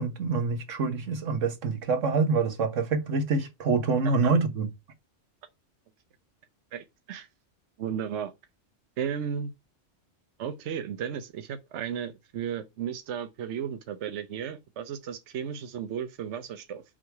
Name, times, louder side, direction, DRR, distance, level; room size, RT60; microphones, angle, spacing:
voice 1, 0.0-4.7, right 4 dB, 90° right, 1.6 m, -26 dB
voice 2, 6.7-7.3 7.8-8.3 9.0-9.5 10.4-16.8, right 8 dB, 70° right, 1.0 m, -34 dB
6.1 x 4.8 x 4.6 m
omnidirectional pair, 1.3 m